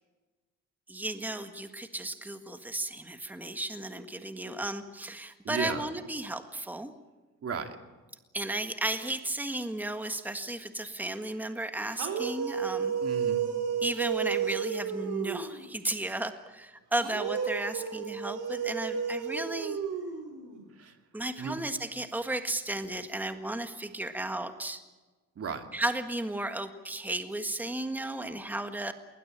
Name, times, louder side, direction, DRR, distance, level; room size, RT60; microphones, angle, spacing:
voice 1, 0.9-6.9 8.3-12.9 13.8-19.8 21.1-24.8 25.7-28.9, right 1 dB, 5° right, 8 dB, 1.7 m, -34 dB
voice 2, 5.4-5.9 7.4-7.8 13.0-13.5 20.8-21.0 21.4-21.6 25.4-25.7, right 5 dB, 50° right, 6 dB, 2.5 m, -35 dB
sound 1, 11.9-15.7 17.0-20.6, right 7 dB, 85° right, 4.3 m, -32 dB
20.5 x 20.5 x 8.8 m, 1.2 s
cardioid pair, 90°, 30 cm